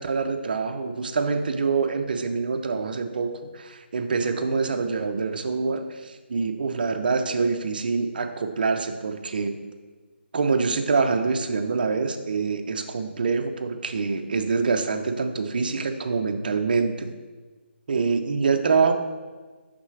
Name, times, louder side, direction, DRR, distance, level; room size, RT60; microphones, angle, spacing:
voice 1, 0.0-9.6 10.3-17.1 17.9-18.9, right 4 dB, 45° right, 6 dB, 0.5 m, -25 dB
5.9 x 5.6 x 3.2 m, 1.3 s
hypercardioid pair, 170°, 7 cm